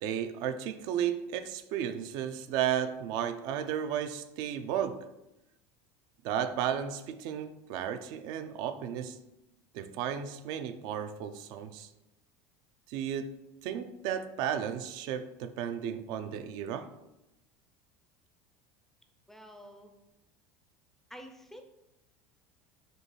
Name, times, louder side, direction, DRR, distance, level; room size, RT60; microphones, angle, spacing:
voice 1, 0.0-5.0 6.2-9.2 9.7-11.9 12.9-13.4 13.6-16.9, right 9 dB, 65° right, 10 dB, 0.4 m, -34 dB
voice 2, 19.3-19.9 21.1-21.6, equal, 5° left, 5 dB, 0.4 m, -48 dB
5.0 x 2.3 x 3.0 m, 0.93 s
supercardioid pair, 110°, 8 cm